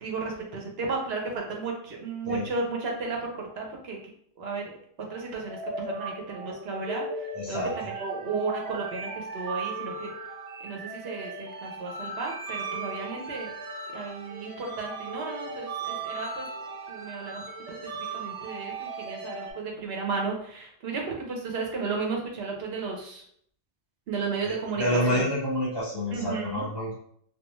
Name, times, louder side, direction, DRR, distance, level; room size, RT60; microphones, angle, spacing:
voice 1, 0.0-4.0 4.4-4.7 5.1-7.0 7.5-10.1 10.6-13.5 13.9-16.5 16.9-17.4 18.1-23.2 24.1-25.2 26.1-26.6, right 4 dB, 70° right, 0 dB, 0.9 m, -33 dB
sound 1, 5.1-19.5, right 3 dB, 50° right, 0.5 m, -37 dB
voice 2, 7.3-7.7 24.4-26.9, equal, 25° left, -7 dB, 0.6 m, -28 dB
2.3 x 2.3 x 3.0 m, 0.63 s
omnidirectional pair, 1.1 m